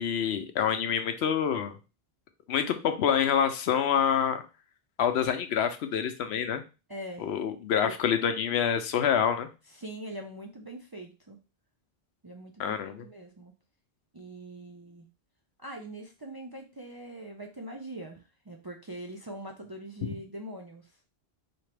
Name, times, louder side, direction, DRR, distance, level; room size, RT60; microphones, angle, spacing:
voice 1, 0.0-1.7 2.5-4.4 5.0-6.6 7.2-9.5 12.6-13.1, left 8 dB, 85° left, 8 dB, 0.9 m, -27 dB
voice 2, 6.9-7.3 7.8-8.0 9.7-11.4 12.2-13.5 14.1-15.1 15.6-20.8, right 1 dB, 35° right, 1 dB, 0.4 m, -42 dB
4.2 x 2.8 x 3.2 m, 0.31 s
omnidirectional pair, 1.1 m